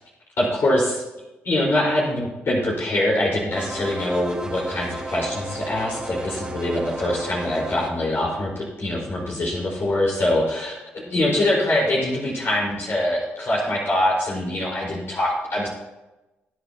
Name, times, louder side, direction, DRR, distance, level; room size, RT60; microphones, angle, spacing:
voice 1, 0.4-1.0 1.4-15.7, left 1 dB, 55° left, -5 dB, 4.6 m, -23 dB
sound 1, 3.5-7.9, right 1 dB, 15° right, 3.0 m, -34 dB
22.0 x 8.4 x 2.9 m, 1.0 s
supercardioid pair, 60°, 5 cm